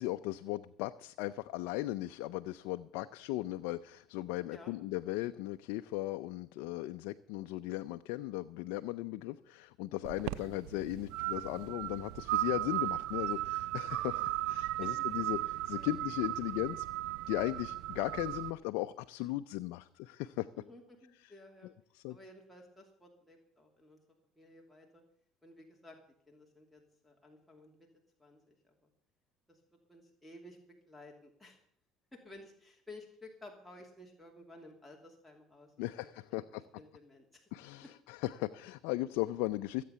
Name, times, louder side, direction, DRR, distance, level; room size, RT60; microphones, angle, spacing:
voice 1, 0.0-16.9 17.3-20.5 21.2-21.3 21.9-22.2 35.8-36.6 37.5-39.8, left 16 dB, 80° left, 8 dB, 0.5 m, -37 dB
sound 1, 10.0-18.5, right 15 dB, 80° right, 0.5 m, -36 dB
voice 2, 20.6-21.7 22.1-24.0 24.4-25.0 25.4-25.9 26.3-27.9 28.2-28.7 29.5-29.6 29.9-30.6 30.9-31.6 32.2-36.4 36.7-37.4, left 1 dB, 5° left, -1 dB, 2.7 m, -55 dB
16.5 x 8.5 x 7.0 m, 0.70 s
supercardioid pair, 95°, 0 cm